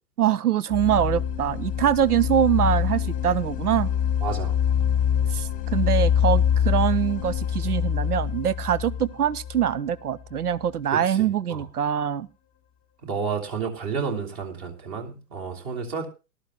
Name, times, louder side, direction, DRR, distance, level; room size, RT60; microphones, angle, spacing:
voice 1, 0.2-3.9 5.3-12.3, right 9 dB, 75° right, 18 dB, 0.8 m, -24 dB
sound 1, 0.7-10.5, left 9 dB, 15° left, 1.1 m, -25 dB
voice 2, 4.2-4.5 10.9-11.7 13.0-16.1, right 5 dB, 35° right, 4 dB, 3.0 m, -31 dB
18.5 x 12.5 x 2.3 m, 0.31 s
figure-of-eight pair, 110°, 46 cm